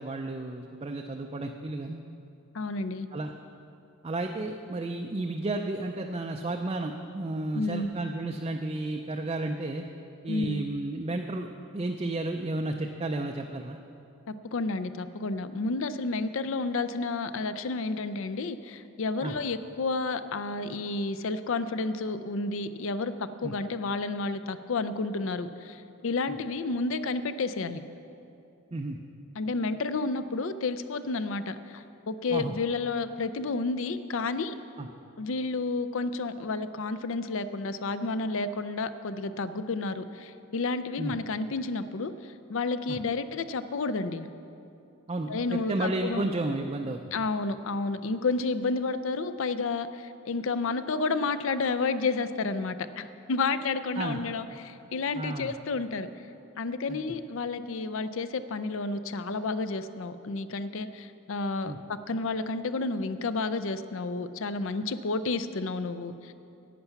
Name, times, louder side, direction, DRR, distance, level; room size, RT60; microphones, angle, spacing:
voice 1, 0.0-2.0 3.1-3.3 4.0-9.8 10.2-11.5 11.7-13.8 19.2-19.4 23.4-23.6 26.3-26.4 28.7-29.0 32.3-32.5 34.8-34.9 41.0-41.2 42.9-43.0 45.1-47.2 54.0-54.2 55.1-55.5 56.9-57.0 61.6-61.8, right 2 dB, 25° right, 3 dB, 0.4 m, -32 dB
voice 2, 2.5-3.1 7.5-7.9 10.3-10.6 14.3-27.8 29.4-34.5 35.2-42.1 42.5-44.3 45.3-46.3 47.1-56.1 56.6-66.3, left 3 dB, 60° left, 12 dB, 0.5 m, -31 dB
11.0 x 9.0 x 5.8 m, 2.7 s
head